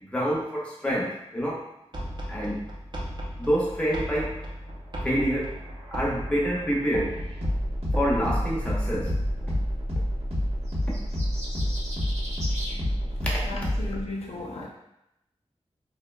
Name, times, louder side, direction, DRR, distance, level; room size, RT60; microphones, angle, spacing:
voice 1, 0.0-1.6 2.3-2.7 3.4-4.3 5.0-5.5 5.9-7.2 7.9-9.1 12.8-12.9, equal, 10° left, -5 dB, 0.6 m, -27 dB
sound 1, 1.9-9.8, equal, 40° right, 0.5 m, -36 dB
sound 2, 5.4-14.0, equal, 60° right, 1.0 m, -29 dB
sound 3, 10.7-12.8, equal, 85° right, 0.8 m, -39 dB
voice 2, 13.2-14.7, left 2 dB, 65° left, -3 dB, 0.4 m, -36 dB
2.7 x 2.2 x 2.2 m, 0.83 s
wide cardioid pair, 105°, 12 cm